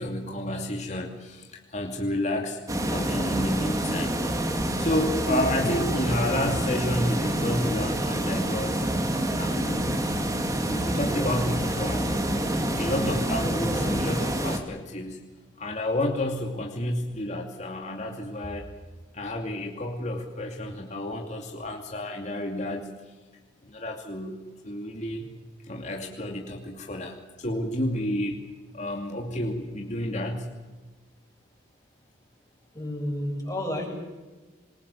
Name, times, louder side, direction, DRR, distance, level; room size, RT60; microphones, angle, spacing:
voice 1, 0.0-2.6 2.9-4.1 4.8-8.8 9.3-10.0 10.7-12.2 12.5-15.2 15.6-18.7 19.1-23.0 23.6-25.2 25.6-28.4 28.7-30.5, left 1 dB, 40° left, 1 dB, 2.7 m, -30 dB
sound 1, 2.7-14.6, right 1 dB, 20° right, 2.6 m, -27 dB
voice 2, 32.7-33.9, left 1 dB, 20° left, 0 dB, 7.4 m, -30 dB
26.0 x 22.0 x 7.3 m, 1.3 s
head